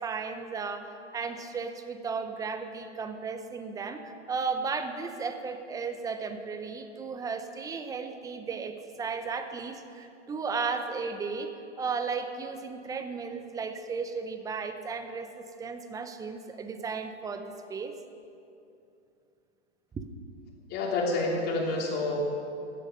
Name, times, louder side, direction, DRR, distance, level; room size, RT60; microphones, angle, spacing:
voice 1, 0.0-17.4 17.7-18.0 19.9-20.1, right 5 dB, 10° right, 8 dB, 0.7 m, -35 dB
voice 2, 20.7-22.2, left 3 dB, 30° left, -1 dB, 2.9 m, -28 dB
15.0 x 11.0 x 6.4 m, 2.6 s
hypercardioid pair, 130°, 35 cm